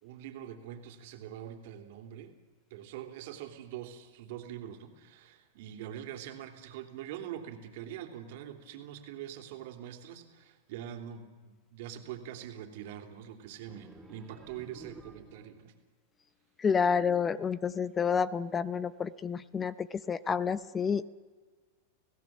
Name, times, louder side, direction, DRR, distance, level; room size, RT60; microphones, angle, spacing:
voice 1, 0.0-2.4 2.7-15.7, right 10 dB, 60° right, 6 dB, 3.2 m, -44 dB
sound 1, 13.7-15.7, right 2 dB, 10° right, 3.8 m, -52 dB
voice 2, 16.6-21.0, left 6 dB, 20° left, 17 dB, 0.7 m, -29 dB
28.5 x 17.0 x 7.6 m, 1.5 s
hypercardioid pair, 110°, 0 cm